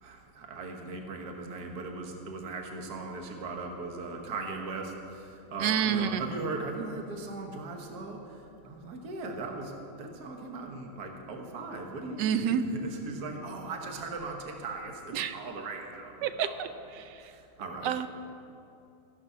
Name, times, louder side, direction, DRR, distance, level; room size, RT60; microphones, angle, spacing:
voice 1, 0.0-8.4 8.6-9.7 10.0-16.6 17.2-17.9, right 3 dB, 50° right, 2 dB, 1.7 m, -38 dB
voice 2, 5.6-6.2 12.2-12.6 15.1-15.4 16.2-17.3 17.8-18.1, right 9 dB, 70° right, 11 dB, 1.0 m, -29 dB
14.5 x 10.5 x 5.6 m, 2.7 s
omnidirectional pair, 2.4 m